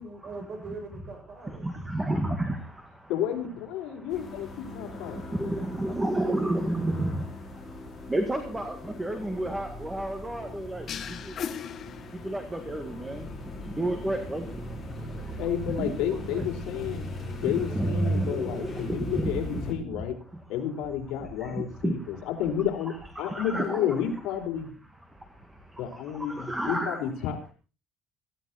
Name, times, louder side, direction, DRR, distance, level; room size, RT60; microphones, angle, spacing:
voice 1, 0.0-1.7 8.4-8.7 15.7-18.1, right 3 dB, 40° right, 4 dB, 7.3 m, -43 dB
voice 2, 1.6-3.1 4.0-4.2 4.7-11.4 12.1-13.3 13.6-15.4 15.7-16.0 17.4-19.6 21.4-22.3 23.2-24.0 25.1-27.0, right 1 dB, 10° right, 7 dB, 1.8 m, -31 dB
voice 3, 3.1-5.3 14.0-14.2 15.4-17.0 17.4-20.2 20.5-24.7 25.8-27.5, left 9 dB, 70° left, 3 dB, 4.5 m, -31 dB
sound 1, 4.1-19.7, left 2 dB, 15° left, 5.1 m, -40 dB
sound 2, 10.9-12.6, left 8 dB, 35° left, 1.3 m, -37 dB
18.5 x 15.5 x 4.2 m, 0.35 s
cardioid pair, 170°, 0 cm